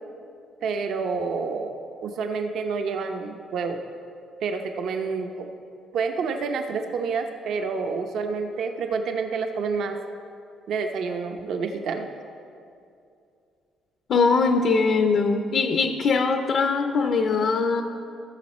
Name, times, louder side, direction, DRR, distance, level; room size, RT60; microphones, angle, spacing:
voice 1, 0.6-1.7 2.0-3.8 4.4-5.5 5.9-10.0 10.7-12.1, right 5 dB, 60° right, 5 dB, 0.7 m, -28 dB
voice 2, 14.1-17.8, left 4 dB, 50° left, 6 dB, 0.5 m, -21 dB
15.0 x 7.1 x 4.2 m, 2.5 s
cardioid pair, 145°, 0 cm